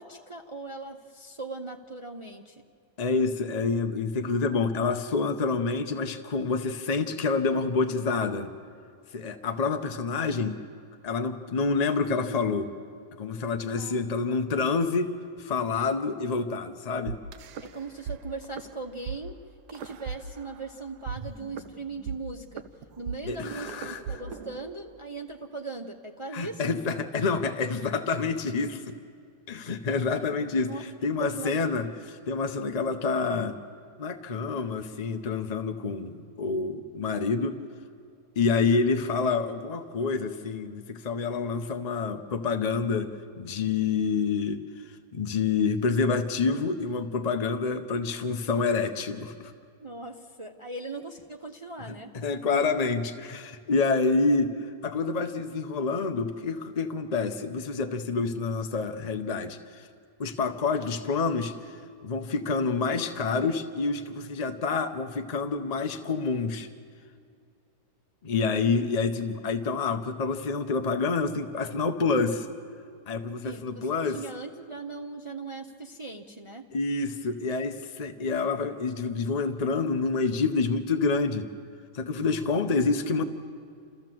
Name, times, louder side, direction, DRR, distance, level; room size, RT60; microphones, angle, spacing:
voice 1, 0.0-2.6 13.8-14.4 17.6-19.3 19.7-22.6 23.0-26.7 30.7-30.9 31.2-31.9 49.8-52.1 73.4-76.7, right 3 dB, 40° right, 3 dB, 0.4 m, -39 dB
voice 2, 3.0-8.5 9.1-10.6 11.0-12.7 13.2-15.1 15.4-17.2 23.3-24.0 26.3-28.8 29.5-31.9 32.3-33.6 34.0-37.6 38.4-43.1 43.4-44.6 45.1-49.5 51.9-54.5 54.8-59.9 60.2-61.7 62.0-66.7 68.2-72.5 73.1-74.2 76.7-81.5 81.9-83.2, left 4 dB, 50° left, 6 dB, 0.4 m, -27 dB
sound 1, 17.1-18.2 18.4-18.7 19.1-19.2 19.7-20.7 21.1-25.1, right 6 dB, 85° right, 1.3 m, -37 dB
28.0 x 14.0 x 7.6 m, 2.2 s
omnidirectional pair, 1.7 m